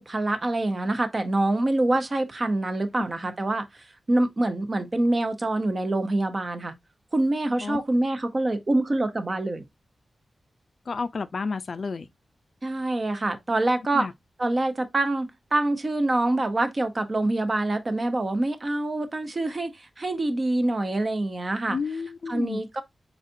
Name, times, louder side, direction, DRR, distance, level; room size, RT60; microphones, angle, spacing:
voice 1, 0.0-3.7 4.1-6.7 7.1-9.6 12.6-14.1 14.4-21.8 22.3-22.8, right 2 dB, 35° right, 0.7 m, -25 dB
voice 2, 10.9-12.1 13.9-14.1 21.7-22.6, left 4 dB, 55° left, 0.4 m, -31 dB
4.3 x 4.0 x 2.6 m
wide cardioid pair, 135°, 0 cm